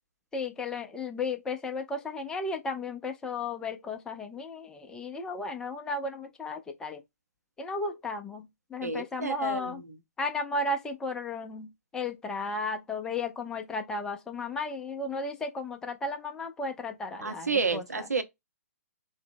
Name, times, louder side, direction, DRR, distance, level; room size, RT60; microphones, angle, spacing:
voice 1, 0.3-7.0 7.6-9.8 10.2-11.7 11.9-18.1, left 3 dB, 10° left, 0.4 m, -34 dB
voice 2, 8.8-9.8 17.2-18.2, right 4 dB, 80° right, 0.6 m, -30 dB
2.6 x 2.0 x 3.5 m
figure-of-eight pair, 125°, 9 cm